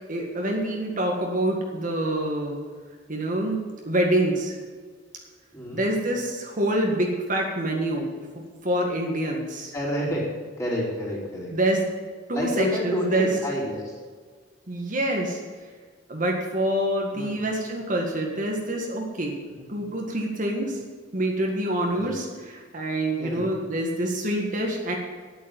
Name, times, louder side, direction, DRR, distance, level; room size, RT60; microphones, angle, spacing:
voice 1, 0.1-2.6 3.1-4.6 5.7-9.7 11.5-11.9 12.3-13.3 14.7-15.4 16.1-19.4 19.7-20.8 21.1-22.3 22.5-24.9, right 1 dB, 45° right, 0 dB, 1.8 m, -26 dB
voice 2, 5.5-5.8 9.7-11.5 12.3-14.0 17.1-17.4 19.5-19.7 21.9-22.1 23.2-23.4, equal, 15° left, -6 dB, 4.5 m, -29 dB
9.9 x 9.1 x 9.0 m, 1.6 s
head